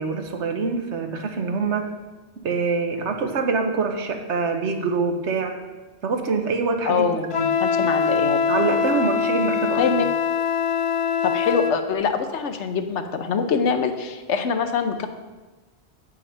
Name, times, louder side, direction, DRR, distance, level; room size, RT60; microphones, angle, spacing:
voice 1, 0.0-1.9 2.4-5.5 6.0-7.0 7.3-7.5 8.5-9.8, right 4 dB, 85° right, 5 dB, 1.2 m, -25 dB
voice 2, 6.8-7.3 7.6-8.4 9.7-10.0 11.2-15.1, left 6 dB, 90° left, 7 dB, 1.1 m, -24 dB
Wind instrument woodwind instrument, 7.3-11.8, left 6 dB, 60° left, 0.3 m, -23 dB
8.6 x 6.3 x 5.5 m, 1.2 s
omnidirectional pair, 1.1 m